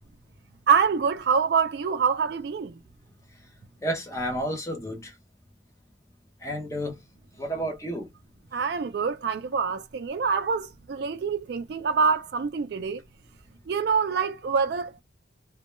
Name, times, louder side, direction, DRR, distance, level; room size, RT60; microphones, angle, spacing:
voice 1, 0.7-2.8 8.5-13.0 13.7-15.0, right 6 dB, 60° right, 0.3 m, -25 dB
voice 2, 3.8-5.0 6.4-7.0 7.4-8.1, right 1 dB, 15° left, 0.7 m, -30 dB
2.2 x 2.1 x 3.0 m
head